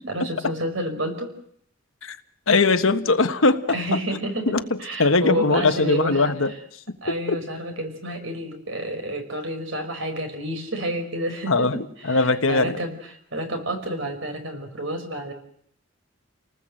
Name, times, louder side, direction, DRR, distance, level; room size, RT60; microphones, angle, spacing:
voice 1, 0.1-1.3 3.7-6.3 7.0-12.9 13.3-15.3, right 1 dB, 65° right, 6 dB, 5.1 m, -29 dB
voice 2, 2.5-3.6 4.5-6.5 7.3-7.4 11.5-12.8, left 3 dB, 75° left, 9 dB, 1.4 m, -20 dB
29.5 x 19.5 x 7.7 m, 0.66 s
head